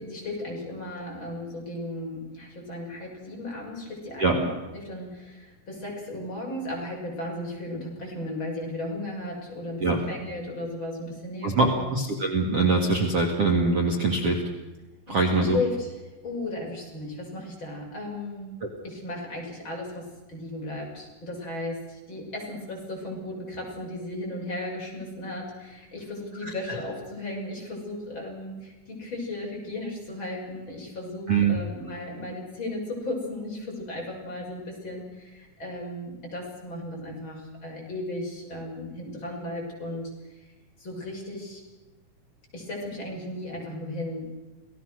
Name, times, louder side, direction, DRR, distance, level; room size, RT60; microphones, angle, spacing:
voice 1, 0.0-11.9 15.1-18.5 18.8-40.1 40.4-40.5 40.8-41.6 42.5-44.3, left 1 dB, 30° left, -2 dB, 6.9 m, -35 dB
voice 2, 11.4-14.4 15.1-15.6 26.4-26.5 31.3-31.5, right 3 dB, 45° right, 1 dB, 2.6 m, -23 dB
28.0 x 18.0 x 6.4 m, 1.1 s
omnidirectional pair, 4.4 m